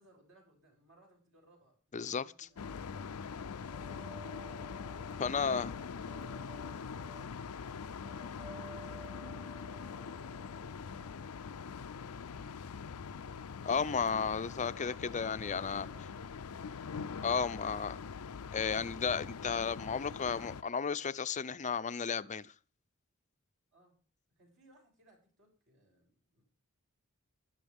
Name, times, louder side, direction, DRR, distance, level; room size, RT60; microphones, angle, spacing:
voice 1, 0.0-3.0 3.5-4.3 5.2-12.9 15.8-16.7 23.7-23.9 24.4-26.4, right 1 dB, 60° right, 7.6 m, -66 dB
voice 2, 1.9-2.2 5.2-5.7 13.6-15.9 17.2-18.0 18.5-22.5, left 6 dB, 35° left, 0.6 m, -33 dB
sound 1, 2.6-20.6, left 5 dB, 80° left, 0.5 m, -43 dB
sound 2, 2.6-11.8, right 1 dB, 20° right, 0.7 m, -56 dB
16.5 x 11.5 x 3.6 m
head